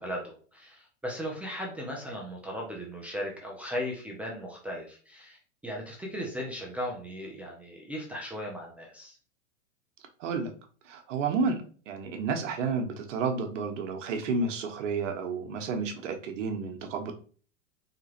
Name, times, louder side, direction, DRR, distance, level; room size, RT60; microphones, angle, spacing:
voice 1, 0.0-9.2, equal, 5° right, -3 dB, 0.3 m, -37 dB
voice 2, 10.2-10.5 10.8-17.1, right 4 dB, 65° right, 5 dB, 0.9 m, -31 dB
3.8 x 2.9 x 2.8 m, 0.41 s
hypercardioid pair, 120°, 39 cm